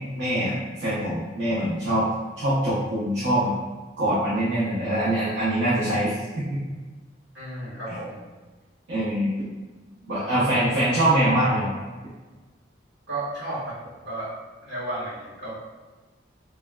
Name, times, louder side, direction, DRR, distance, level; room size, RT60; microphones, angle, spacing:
voice 1, 0.2-2.0 2.4-3.5 4.0-6.6 8.9-9.3 10.0-11.7, right 1 dB, 85° right, -11 dB, 0.7 m, -23 dB
voice 2, 7.3-8.2 10.2-10.8 13.1-14.3 14.6-15.5, right 1 dB, 70° right, -9 dB, 1.3 m, -34 dB
3.3 x 2.2 x 2.2 m, 1.3 s
head